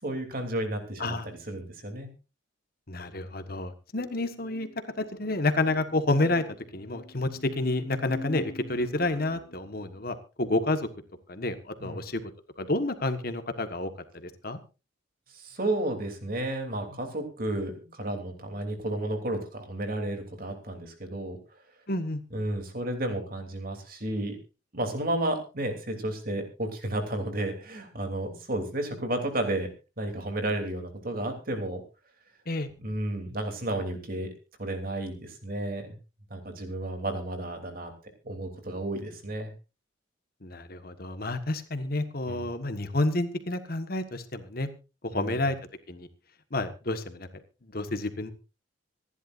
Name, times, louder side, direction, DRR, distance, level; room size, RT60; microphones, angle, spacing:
voice 1, 0.0-2.1 11.8-12.1 15.3-21.4 22.3-24.4 24.7-29.7 30.0-31.8 32.8-34.3 34.6-35.9 36.3-37.9 38.2-39.5 42.3-42.5 45.1-45.4, right 1 dB, 45° right, 5 dB, 3.1 m, -32 dB
voice 2, 2.9-10.9 11.3-12.2 12.6-14.6 21.9-22.2 32.5-32.7 40.4-44.7 45.0-45.6 45.9-46.1 46.5-47.3 47.7-48.3, left 2 dB, 50° left, 9 dB, 1.4 m, -29 dB
26.0 x 11.0 x 2.6 m, 0.30 s
head